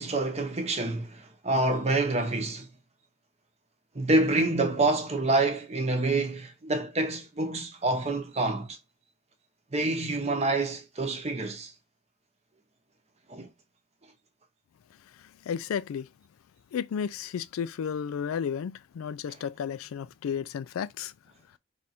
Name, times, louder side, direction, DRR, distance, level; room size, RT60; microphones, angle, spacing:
voice 1, 0.0-2.7 3.9-8.8 9.7-11.7 13.3-13.5, right 2 dB, 30° right, 0.7 m, -27 dB
voice 2, 15.0-16.1 16.7-21.1, left 7 dB, 80° left, 0.3 m, -33 dB
3.4 x 2.5 x 4.2 m
head